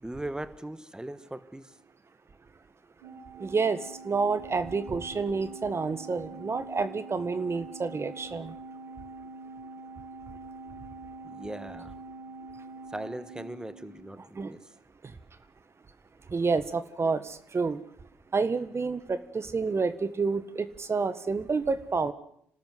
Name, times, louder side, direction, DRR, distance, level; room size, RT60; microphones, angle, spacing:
voice 1, 0.0-1.7 11.3-11.9 12.9-14.6, right 1 dB, 10° right, 13 dB, 1.5 m, -39 dB
Organ, 3.0-14.3, right 3 dB, 90° right, 3.8 m, -45 dB
voice 2, 3.4-3.8 4.0-8.5 14.4-14.5 16.3-17.8 18.3-22.1, right 4 dB, 35° right, 12 dB, 1.6 m, -29 dB
27.0 x 13.0 x 9.6 m, 0.68 s
hypercardioid pair, 50°, 7 cm